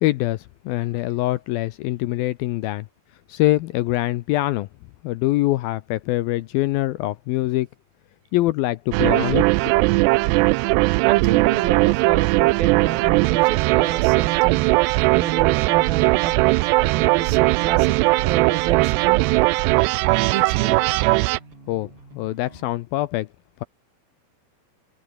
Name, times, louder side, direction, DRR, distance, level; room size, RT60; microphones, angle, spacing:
voice 1, 0.0-2.9 3.3-4.7 5.0-7.7 8.3-9.7 21.7-23.3, left 17 dB, 80° left, 2.2 m, -24 dB
sound 1, 8.9-21.4, right 23 dB, 85° right, 2.7 m, -19 dB
voice 2, 11.0-14.7 15.1-19.3 20.3-20.8, right 11 dB, 70° right, 3.3 m, -29 dB
Bass guitar, 13.1-22.7, right 3 dB, 30° right, 7.7 m, -48 dB
omnidirectional pair, 4.8 m